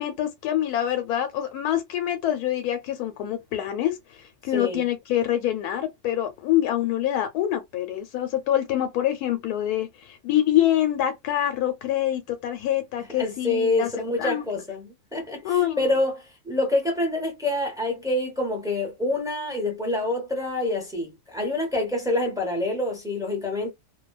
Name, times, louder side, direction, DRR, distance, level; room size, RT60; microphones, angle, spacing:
voice 1, 0.0-13.9 14.2-14.5 15.4-15.9, left 12 dB, 85° left, 1.1 m, -25 dB
voice 2, 4.5-4.8 13.1-23.7, left 2 dB, 5° right, 0.6 m, -27 dB
2.5 x 2.2 x 2.2 m
omnidirectional pair, 1.6 m